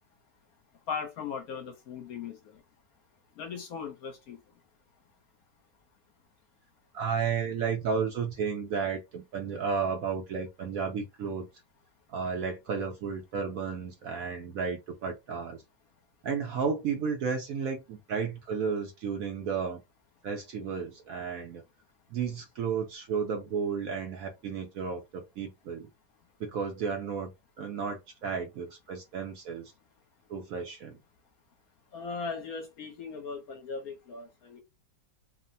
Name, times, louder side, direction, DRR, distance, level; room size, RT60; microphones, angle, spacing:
voice 1, 0.9-2.6 3.4-4.4 31.9-34.6, left 5 dB, 65° left, 1.1 m, -38 dB
voice 2, 6.9-11.5 12.1-15.6 16.2-19.8 20.2-21.6 22.1-25.9 26.4-27.3 27.6-29.7 30.3-31.0, right 6 dB, 65° right, 0.9 m, -33 dB
3.2 x 2.1 x 2.6 m
omnidirectional pair, 1.9 m